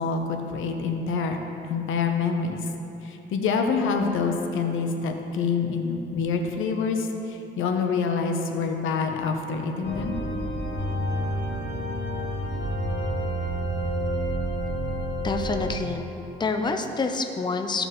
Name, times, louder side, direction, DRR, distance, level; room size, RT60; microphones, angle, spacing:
voice 1, 0.0-1.4 1.7-2.6 3.0-10.2, left 5 dB, 85° left, 4 dB, 0.8 m, -26 dB
sound 1, 9.8-15.7, equal, 60° left, 1.8 m, -29 dB
voice 2, 15.2-16.1 16.4-17.9, left 3 dB, 20° left, 5 dB, 0.7 m, -27 dB
15.5 x 5.3 x 3.1 m, 2.8 s
cardioid pair, 90°, 20 cm